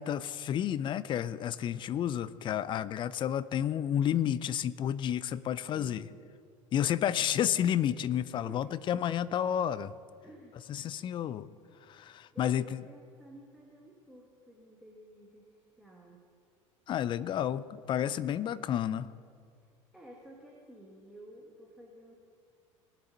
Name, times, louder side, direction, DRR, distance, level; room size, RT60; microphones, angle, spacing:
voice 1, 0.0-6.0 6.7-9.9 10.7-11.5 11.9-12.8 16.9-19.1, left 10 dB, 30° left, 17 dB, 0.4 m, -31 dB
voice 2, 5.7-6.2 8.4-8.8 10.2-10.6 12.3-15.5 15.8-16.3 18.0-18.4 19.6-22.1, right 1 dB, ahead, -2 dB, 1.6 m, -52 dB
19.0 x 7.4 x 4.1 m, 2.2 s
figure-of-eight pair, 70°, 17 cm